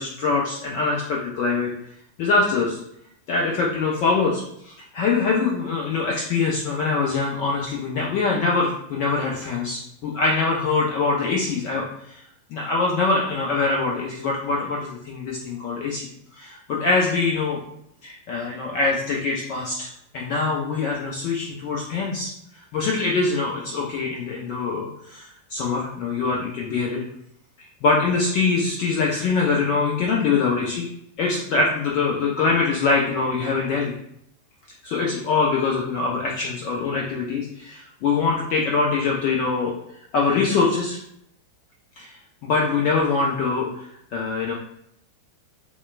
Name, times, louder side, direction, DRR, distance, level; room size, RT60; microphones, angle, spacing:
voice 1, 0.0-1.7 2.2-2.8 3.3-12.2 12.5-17.6 18.0-22.3 22.5-27.0 27.8-30.9 31.2-33.9 34.8-39.7 40.1-41.0 42.0-44.5, left 4 dB, 45° left, -2 dB, 0.6 m, -23 dB
4.3 x 2.2 x 2.4 m, 0.74 s
figure-of-eight pair, 90°, 0 cm